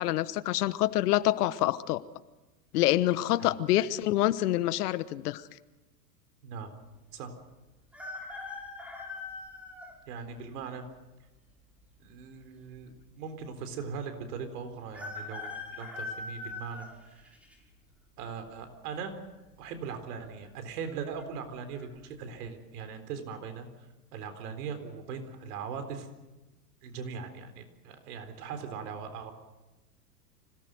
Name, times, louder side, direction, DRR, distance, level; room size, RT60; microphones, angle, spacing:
voice 1, 0.0-2.0 2.7-5.4, left 15 dB, 65° left, 16 dB, 1.2 m, -26 dB
voice 2, 6.4-6.7 7.1-7.3 10.1-10.8 12.0-17.3 18.2-19.2 19.6-23.7 24.1-26.1 26.8-29.3, right 6 dB, 65° right, 8 dB, 4.1 m, -40 dB
sound 1, 7.9-10.0 10.6-10.7 11.8-12.4 12.7-12.8 13.0-13.1 14.9-17.6 18.1-18.5 19.6-20.0 20.2-20.3 20.9-21.2 21.7-21.9, left 3 dB, 5° right, 5.7 m, -41 dB
26.0 x 18.0 x 6.4 m, 1.1 s
hypercardioid pair, 110°, 50 cm